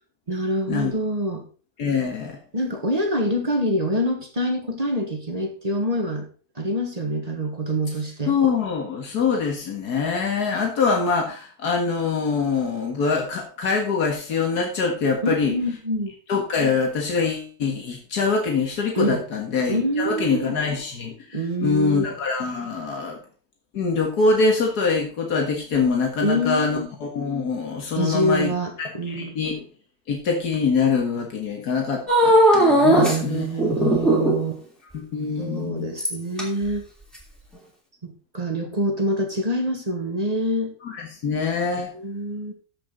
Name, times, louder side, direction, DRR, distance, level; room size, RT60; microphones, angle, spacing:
voice 1, 0.3-1.4 2.5-6.3 6.5-8.3 15.2-16.1 19.0-19.2 19.7-20.5 21.3-22.0 26.2-26.9 27.9-29.4 32.8-34.6 35.4-36.8 38.0-40.7 41.9-42.5, equal, 25° right, 4 dB, 1.5 m, -25 dB
voice 2, 1.8-2.4 8.3-15.5 16.3-23.2 23.7-28.5 28.8-29.7 30.1-33.5 34.9-35.9 40.8-41.9, left 4 dB, 85° left, 1 dB, 2.1 m, -24 dB
sound 1, 32.1-33.2 33.6-34.5 36.0-36.4 37.2-37.3, equal, ahead, 2.7 m, -17 dB
14.0 x 5.7 x 4.0 m, 0.38 s
omnidirectional pair, 1.6 m